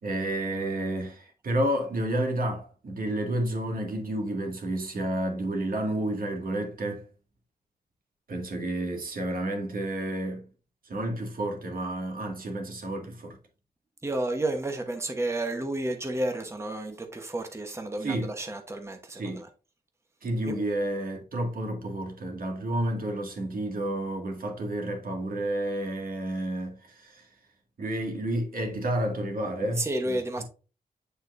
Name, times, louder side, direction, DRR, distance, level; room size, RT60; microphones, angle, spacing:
voice 1, 0.0-7.1 8.3-10.5 10.8-13.4 18.0-18.3 19.1-19.4 20.2-27.3 27.8-30.4, right 1 dB, 60° right, 2.0 m, -30 dB
voice 2, 14.0-19.5 20.4-20.5 29.8-30.4, right 1 dB, 15° right, 1.0 m, -31 dB
8.5 x 4.4 x 2.6 m
wide cardioid pair, 115°, 16 cm